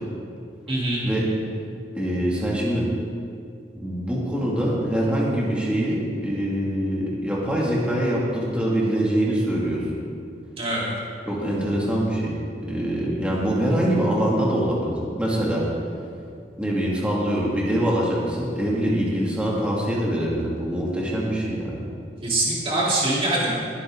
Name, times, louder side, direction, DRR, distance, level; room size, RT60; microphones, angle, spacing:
voice 1, 0.7-1.1 10.6-10.8 22.2-23.5, right 2 dB, 35° right, -6 dB, 3.8 m, -23 dB
voice 2, 1.9-2.9 3.7-9.9 11.3-12.4 12.7-15.7 16.6-21.8, right 1 dB, 5° right, -5 dB, 2.5 m, -24 dB
20.5 x 9.8 x 3.9 m, 2.4 s
head